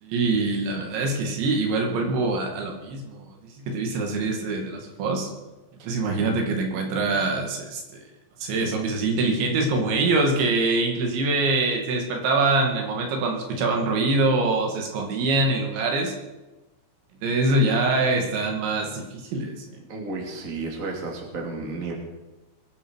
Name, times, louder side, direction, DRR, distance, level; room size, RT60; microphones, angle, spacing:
voice 1, 0.0-3.3 3.6-5.3 5.8-8.0 8.4-16.1 17.2-19.7, right 3 dB, 75° right, 2 dB, 4.5 m, -24 dB
voice 2, 19.9-21.9, right 3 dB, 20° right, 0 dB, 2.4 m, -32 dB
22.0 x 10.0 x 4.7 m, 1.1 s
omnidirectional pair, 5.3 m